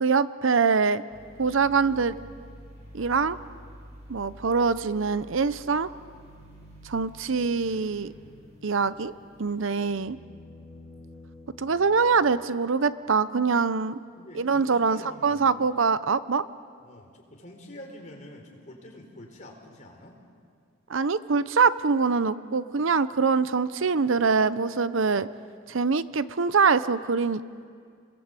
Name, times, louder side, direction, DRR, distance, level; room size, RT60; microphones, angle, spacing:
voice 1, 0.0-1.0 1.4-2.2 2.9-3.4 4.1-5.9 6.8-8.1 8.6-9.1 9.4-10.2 11.6-14.0 14.3-16.4 20.9-25.3 25.7-27.4, right 5 dB, 65° right, 15 dB, 0.7 m, -24 dB
sound 1, 1.1-9.6, equal, 35° right, 6.3 m, -49 dB
sound 2, 9.0-13.1 15.5-15.6, left 2 dB, 10° right, 5.9 m, -51 dB
voice 2, 14.2-15.8 16.8-20.2, left 1 dB, 35° left, 1 dB, 4.5 m, -47 dB
29.5 x 22.0 x 8.2 m, 2.2 s
head